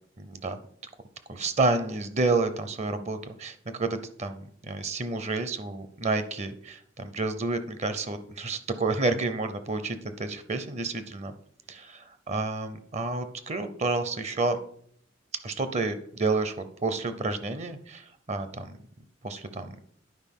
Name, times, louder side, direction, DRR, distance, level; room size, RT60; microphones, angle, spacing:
voice 1, 0.2-0.6 1.3-11.3 11.7-14.6 15.4-18.7 19.2-19.7, right 3 dB, 35° right, 10 dB, 0.7 m, -30 dB
10.5 x 4.9 x 5.4 m, 0.63 s
head